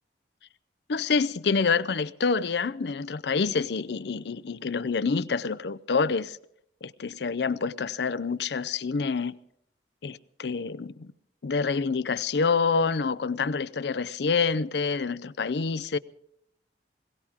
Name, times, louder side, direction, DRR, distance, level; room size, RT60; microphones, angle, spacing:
voice 1, 0.9-6.4 6.8-9.4 10.0-11.1 11.4-16.0, left 5 dB, 70° left, 0.6 m, -27 dB
21.5 x 17.5 x 3.6 m
head